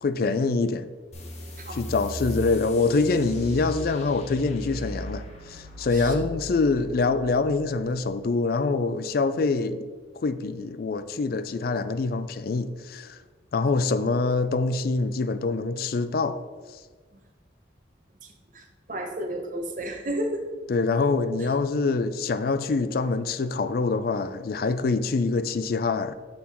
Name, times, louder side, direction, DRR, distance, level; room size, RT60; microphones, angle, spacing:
voice 1, 0.0-0.9 1.7-9.9 10.2-13.2 13.5-16.4 20.7-26.1, left 3 dB, 55° left, 0.4 m, -25 dB
sound 1, 1.1-8.2, equal, 35° left, 1.2 m, -38 dB
voice 2, 18.9-20.4, right 1 dB, 45° right, 0.9 m, -31 dB
6.4 x 5.4 x 4.3 m
head